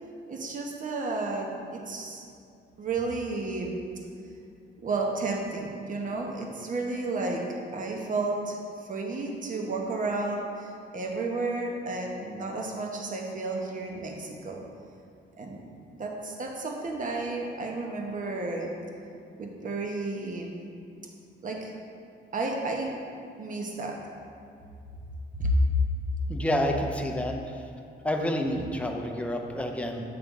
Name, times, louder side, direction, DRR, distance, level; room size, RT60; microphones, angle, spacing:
voice 1, 0.3-2.2 2.8-3.8 4.8-7.4 7.7-14.6 15.4-15.6 16.0-18.7 19.4-20.6 21.4-21.7 22.3-22.9 23.4-24.0 25.4-25.6, right 2 dB, 40° right, 1 dB, 1.1 m, -32 dB
voice 2, 26.3-27.3 28.0-30.0, left 1 dB, 5° left, 2 dB, 0.7 m, -28 dB
7.8 x 3.4 x 5.4 m, 2.4 s
cardioid pair, 90°, 20 cm